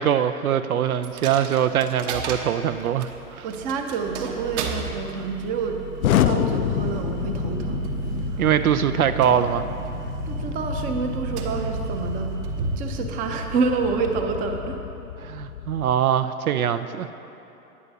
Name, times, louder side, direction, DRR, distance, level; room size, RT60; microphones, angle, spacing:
voice 1, 0.0-3.5 8.4-9.7 15.2-17.1, right 9 dB, 65° right, 11 dB, 0.6 m, -22 dB
Coin (dropping), 1.0-14.8, right 7 dB, 50° right, 1.2 m, -34 dB
voice 2, 3.4-5.8 6.1-7.9 8.2-8.5 10.3-12.4 12.8-14.8, right 4 dB, 20° right, 5 dB, 0.6 m, -28 dB
Explosion, 6.0-15.9, left 11 dB, 65° left, 0.5 m, -29 dB
19.5 x 9.6 x 2.8 m, 2.9 s
figure-of-eight pair, 110°, 46 cm